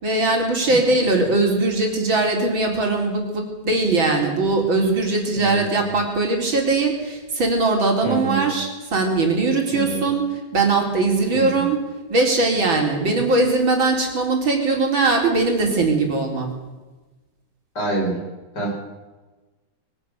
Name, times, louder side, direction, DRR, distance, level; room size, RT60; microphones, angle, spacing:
voice 1, 0.0-11.8 12.1-16.5, right 3 dB, 70° right, 1 dB, 4.8 m, -20 dB
voice 2, 5.3-5.8 8.0-8.5 9.7-10.1 11.3-11.6 17.8-18.2 18.5-18.7, right 3 dB, 50° left, -3 dB, 8.8 m, -26 dB
23.0 x 18.5 x 6.9 m, 1.2 s
omnidirectional pair, 2.2 m